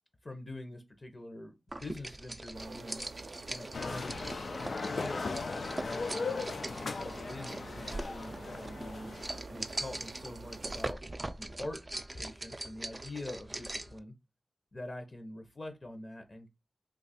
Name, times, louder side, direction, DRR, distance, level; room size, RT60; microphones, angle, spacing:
voice 1, 0.2-3.1 3.5-4.2 4.9-9.2 9.5-11.0 11.4-11.8 12.1-14.2 14.7-16.5, left 2 dB, 40° left, 0.7 m, -45 dB
sound 1, 1.7-14.0, right 2 dB, 30° right, 0.3 m, -42 dB
sound 2, 2.5-10.9, right 4 dB, 90° right, 0.5 m, -49 dB
sound 3, 3.7-9.4, left 4 dB, 80° left, 0.3 m, -38 dB
2.9 x 2.3 x 4.1 m
wide cardioid pair, 65°, 0 cm